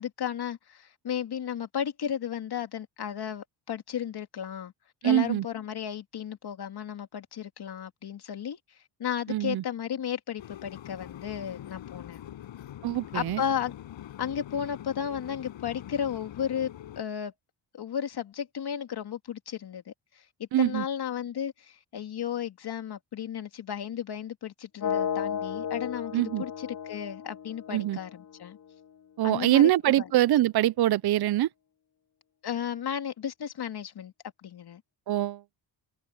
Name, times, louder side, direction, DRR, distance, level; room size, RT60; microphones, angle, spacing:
voice 1, 0.0-4.7 5.0-8.6 9.0-12.2 13.1-13.7 14.2-17.3 17.7-19.9 20.4-28.6 29.2-30.1 32.4-34.1 34.4-34.8, left 9 dB, 60° left, 2.5 m, -34 dB
voice 2, 5.0-5.4 9.3-9.6 12.8-13.4 20.5-20.8 26.1-26.4 27.7-28.0 29.2-31.5 35.1-35.4, right 14 dB, 60° right, 0.6 m, -24 dB
sound 1, 10.4-17.0, left 12 dB, 90° left, 7.6 m, -44 dB
sound 2, 24.8-28.8, left 8 dB, 45° left, 0.7 m, -34 dB
cardioid pair, 105°, 44 cm